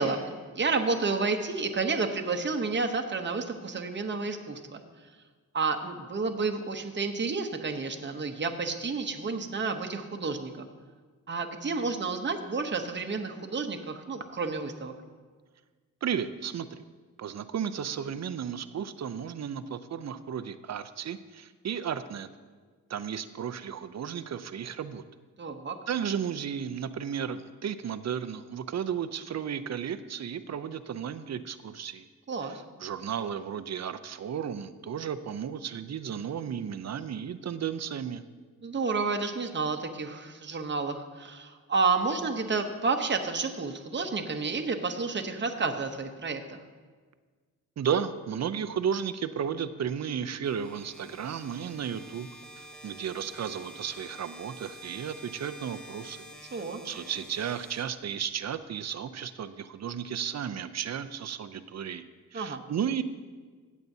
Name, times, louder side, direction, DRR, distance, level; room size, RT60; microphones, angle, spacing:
voice 1, 0.0-4.8 5.5-10.7 11.3-14.9 25.4-25.8 32.3-32.6 38.6-46.6 56.5-56.8 62.3-62.6, right 4 dB, 35° right, 5 dB, 0.9 m, -30 dB
voice 2, 16.0-16.8 17.2-22.3 22.9-25.0 25.9-32.0 32.5-38.2 47.8-52.3 52.8-56.2 56.8-62.0 62.3-63.0, right 8 dB, 50° right, 11 dB, 0.5 m, -34 dB
sound 1, 50.4-58.4, right 1 dB, ahead, 0.9 m, -49 dB
16.0 x 8.2 x 2.7 m, 1.5 s
cardioid pair, 90°, 33 cm